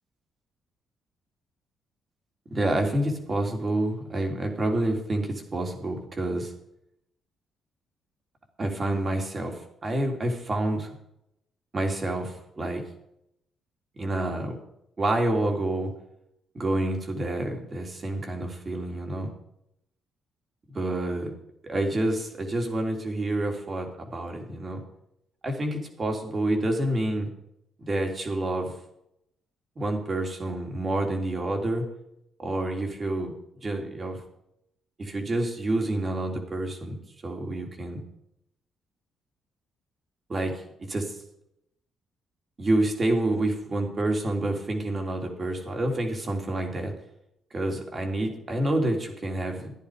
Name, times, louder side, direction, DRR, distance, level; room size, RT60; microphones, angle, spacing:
voice 1, 2.5-6.5 8.6-10.9 11.7-12.8 14.0-14.6 15.0-15.9 16.5-19.3 20.7-21.3 21.6-24.8 25.4-27.3 27.8-28.7 29.8-31.8 32.4-33.3 33.6-34.2 35.0-37.0 37.2-38.0 40.3-40.6 40.9-41.1 42.6-46.9 47.5-49.7, right 1 dB, 35° right, 2 dB, 3.5 m, -28 dB
14.5 x 10.5 x 5.1 m, 0.77 s
cardioid pair, 90°, 0 cm